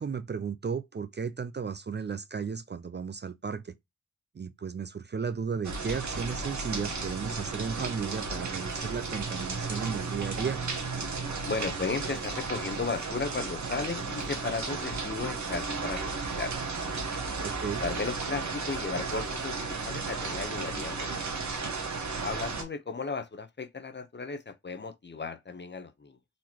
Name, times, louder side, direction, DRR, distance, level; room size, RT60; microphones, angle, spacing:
voice 1, 0.0-3.7 4.4-10.6 17.4-17.8, right 6 dB, 35° right, 0.4 m, -34 dB
sound 1, 5.6-22.6, right 4 dB, 65° right, 1.3 m, -34 dB
voice 2, 11.4-16.6 17.6-21.1 22.2-26.2, left 4 dB, 35° left, 0.7 m, -35 dB
4.1 x 2.9 x 2.8 m
wide cardioid pair, 70°, 30 cm